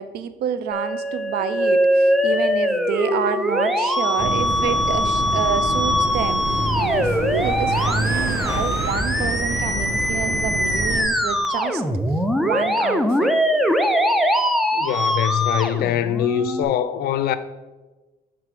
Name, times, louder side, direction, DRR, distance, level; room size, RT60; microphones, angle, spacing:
voice 1, 0.0-11.8 12.4-13.3, right 8 dB, 70° right, 0.5 m, -28 dB
Musical instrument, 0.7-16.7, equal, ahead, 0.5 m, -22 dB
sound 1, 1.4-6.7, left 3 dB, 20° left, 1.4 m, -39 dB
sound 2, 4.2-11.1, right 1 dB, 15° right, 1.2 m, -27 dB
voice 2, 14.7-17.4, left 10 dB, 70° left, 0.5 m, -23 dB
6.7 x 3.6 x 4.8 m
cardioid pair, 110°, 17 cm